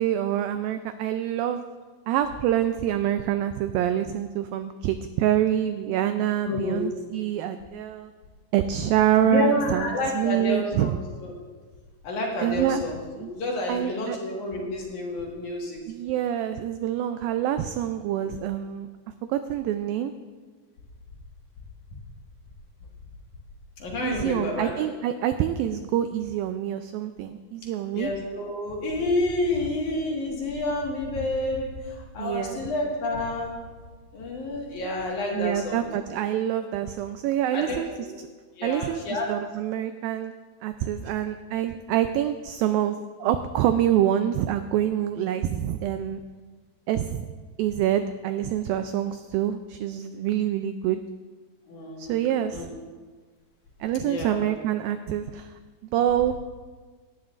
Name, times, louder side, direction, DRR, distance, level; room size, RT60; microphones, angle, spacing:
voice 1, 0.0-1.6 2.1-8.1 8.5-11.0 12.4-12.8 13.1-13.3 13.7-14.2 15.9-18.9 19.3-20.1 24.0-28.1 32.2-32.6 35.3-37.9 38.6-40.3 40.6-46.2 46.9-47.3 47.6-51.0 52.0-52.7 53.8-56.4, right 11 dB, 90° right, 9 dB, 2.0 m, -26 dB
voice 2, 6.5-6.8 9.3-10.9 11.2-11.3 12.0-13.0 13.3-15.8 23.8-24.8 27.9-33.6 34.1-35.8 37.5-37.8 38.6-39.3 51.7-52.2 52.5-52.7 54.0-54.5, left 2 dB, 55° left, -2 dB, 2.8 m, -29 dB
18.0 x 12.0 x 2.5 m, 1.4 s
omnidirectional pair, 4.6 m